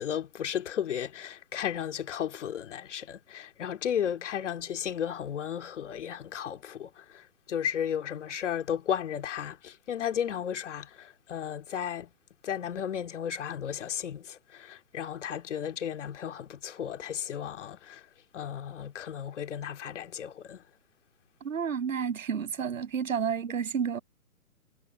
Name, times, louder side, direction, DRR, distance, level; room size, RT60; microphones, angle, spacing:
voice 1, 0.0-7.0 7.5-12.1 12.4-18.0 18.3-20.6, left 9 dB, 55° left, 2.6 m, -34 dB
voice 2, 21.4-24.0, right 7 dB, 65° right, 7.9 m, -30 dB
hypercardioid pair, 140°, 43 cm